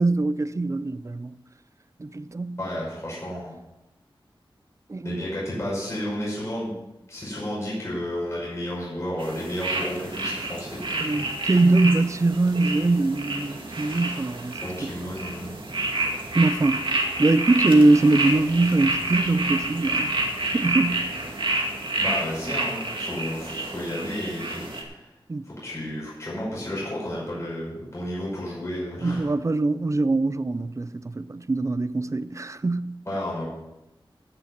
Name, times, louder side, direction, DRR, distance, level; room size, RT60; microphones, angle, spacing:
voice 1, 0.0-1.3 2.0-2.6 4.9-5.2 11.0-14.9 16.3-20.1 20.5-21.0 25.3-25.4 29.0-32.9, right 2 dB, 35° right, 0.5 m, -22 dB
voice 2, 2.6-3.5 5.0-6.8 7.1-11.2 14.6-15.5 22.0-25.1 25.4-29.3 33.1-33.4, left 1 dB, 30° left, 5.7 m, -32 dB
sound 1, 9.2-24.8, right 2 dB, 65° right, 2.3 m, -29 dB
15.5 x 6.9 x 5.9 m
wide cardioid pair, 75°, 9 cm